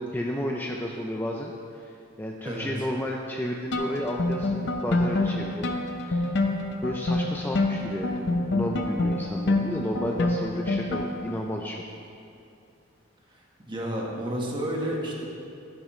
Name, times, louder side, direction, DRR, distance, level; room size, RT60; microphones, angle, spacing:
voice 1, 0.0-6.3 6.8-11.8, equal, 10° left, 0 dB, 0.4 m, -32 dB
tip toe, 3.7-11.4, left 2 dB, 60° left, 0.7 m, -27 dB
voice 2, 13.7-15.3, right 1 dB, 25° right, -2 dB, 1.5 m, -31 dB
12.5 x 10.5 x 3.2 m, 2.6 s
head